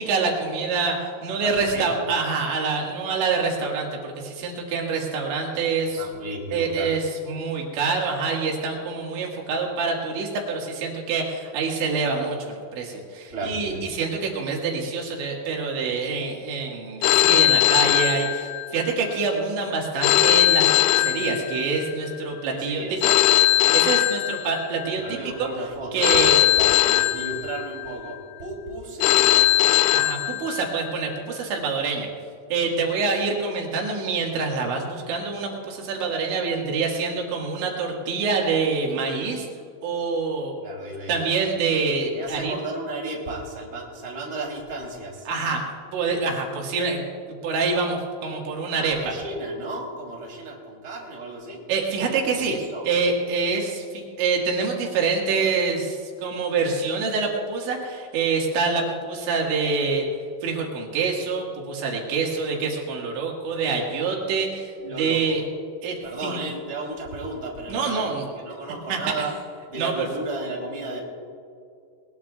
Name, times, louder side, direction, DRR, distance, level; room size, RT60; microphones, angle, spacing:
voice 1, 0.0-6.1 6.5-23.3 23.7-26.4 29.9-32.1 32.5-39.5 39.8-40.5 41.1-42.6 45.3-45.6 45.9-47.0 47.4-48.0 48.2-49.1 51.7-52.6 52.8-60.1 60.4-65.4 65.8-66.0 66.2-66.4 67.7-68.3 68.9-69.3 69.8-70.1, right 4 dB, 80° right, -1 dB, 4.2 m, -26 dB
voice 2, 1.4-2.0 5.8-6.9 13.3-13.9 22.5-23.2 25.0-29.4 40.6-41.2 42.1-45.3 48.8-51.6 52.2-52.8 64.8-65.4 66.0-69.3 69.7-71.0, right 2 dB, 20° right, -2 dB, 2.9 m, -34 dB
Telephone, 17.0-18.9 20.0-21.9 23.0-24.9 26.0-27.9 29.0-30.9, left 14 dB, 85° left, 2.9 m, -20 dB
21.0 x 20.0 x 2.4 m, 2.4 s
omnidirectional pair, 5.3 m